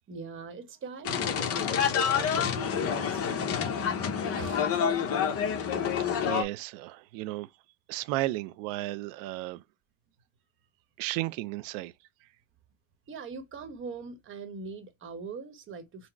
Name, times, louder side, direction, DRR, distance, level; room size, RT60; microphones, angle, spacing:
voice 1, 0.1-3.6 4.4-4.7 13.1-16.1, right 4 dB, 30° right, 1.0 m, -42 dB
sound 1, 1.0-6.4, left 7 dB, 40° left, 0.8 m, -28 dB
voice 2, 6.0-7.5 7.9-9.6 11.0-11.9, right 17 dB, 80° right, 0.5 m, -34 dB
3.9 x 2.0 x 4.4 m
supercardioid pair, 120°, 38 cm